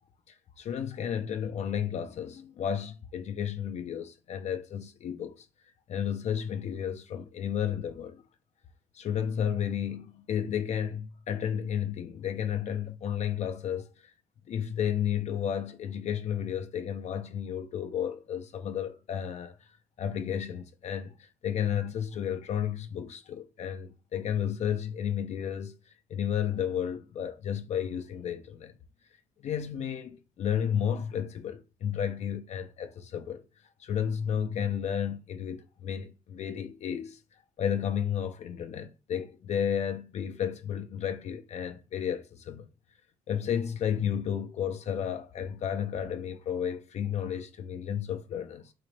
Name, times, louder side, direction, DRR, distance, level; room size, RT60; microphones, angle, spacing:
voice 1, 0.3-5.5 5.9-8.2 8.9-14.1 14.5-19.7 20.0-28.8 29.4-33.4 33.8-37.2 37.6-42.7 43.3-48.7, left 8 dB, 55° left, 0.4 m, -32 dB
3.8 x 2.4 x 3.1 m
cardioid pair, 80°, 14 cm